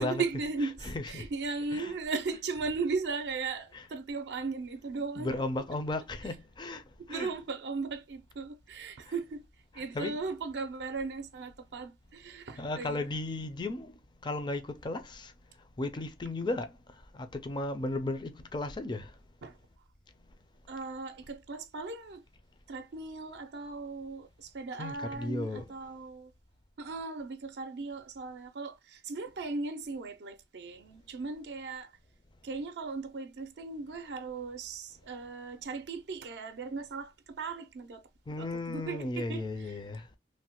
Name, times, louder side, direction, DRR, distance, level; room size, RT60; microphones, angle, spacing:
voice 1, 0.0-5.4 7.1-9.4 9.7-13.1 19.4-19.6 20.7-22.2 22.7-26.3 26.8-31.9 32.4-38.0 38.4-39.8, right 4 dB, 70° right, 0.4 m, -37 dB
voice 2, 0.6-1.9 3.7-3.9 5.2-6.8 7.1-7.3 9.1-9.2 9.7-10.2 12.6-14.0 14.2-15.3 15.8-16.8 17.1-19.1 24.8-25.7 38.3-40.1, left 2 dB, 25° left, 0.4 m, -35 dB
3.1 x 2.1 x 2.8 m
head